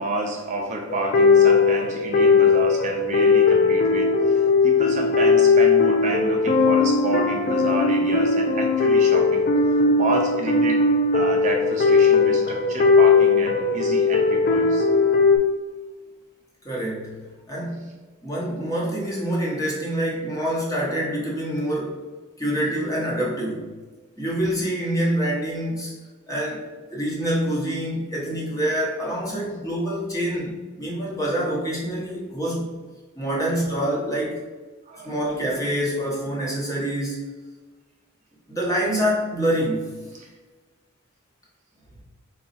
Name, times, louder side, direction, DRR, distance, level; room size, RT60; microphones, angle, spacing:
voice 1, 0.0-9.5 9.9-14.9 33.5-33.6 34.9-35.3 40.1-40.3, right 2 dB, 35° right, 1 dB, 0.4 m, -30 dB
sound 1, 0.9-15.4, left 4 dB, 45° left, 0.4 m, -18 dB
voice 2, 16.6-17.2 17.5-17.9 18.2-22.0 22.4-23.7 24.2-25.9 26.3-32.7 33.1-34.4 35.0-37.3 38.5-39.9, right 1 dB, 15° left, -4 dB, 1.0 m, -26 dB
3.9 x 2.3 x 4.0 m, 1.3 s
head